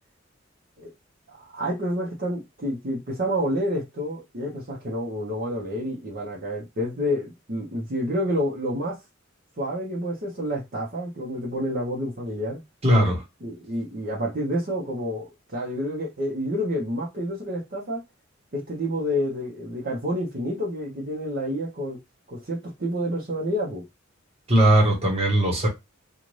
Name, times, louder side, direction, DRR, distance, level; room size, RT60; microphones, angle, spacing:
voice 1, 1.3-9.0 9.6-12.6 13.4-18.0 18.5-22.0 22.3-23.8, equal, 50° right, 0.8 m, -29 dB
voice 2, 12.8-13.2 24.5-25.7, right 1 dB, 30° right, 1.1 m, -19 dB
2.6 x 2.4 x 3.1 m
head